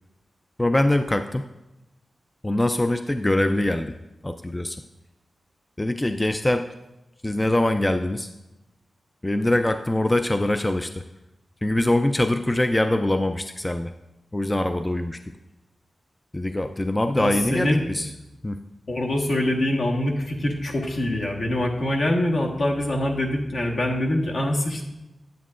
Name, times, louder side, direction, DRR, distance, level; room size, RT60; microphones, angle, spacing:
voice 1, 0.6-1.4 2.4-3.9 4.2-4.8 5.8-6.7 7.2-8.3 9.2-11.0 11.6-13.9 14.3-15.2 16.3-18.1 18.4-18.6, left 1 dB, 15° left, 8 dB, 0.3 m, -23 dB
voice 2, 17.1-17.8 18.9-24.8, left 1 dB, 65° left, 0 dB, 1.3 m, -24 dB
9.3 x 8.2 x 2.5 m, 0.99 s
wide cardioid pair, 80°, 0 cm